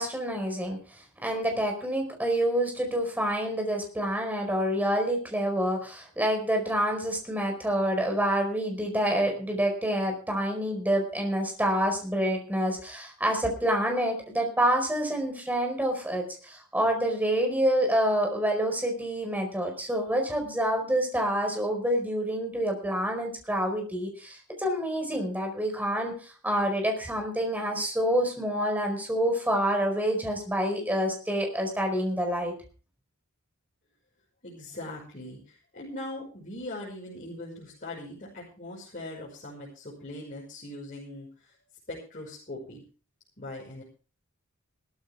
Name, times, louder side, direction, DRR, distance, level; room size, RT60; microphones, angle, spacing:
voice 1, 0.0-32.5, equal, 10° right, 3 dB, 4.7 m, -27 dB
voice 2, 34.4-41.6 41.9-42.8 43.4-43.8, left 1 dB, 35° left, -5 dB, 5.7 m, -41 dB
17.5 x 14.0 x 3.6 m, 0.38 s
head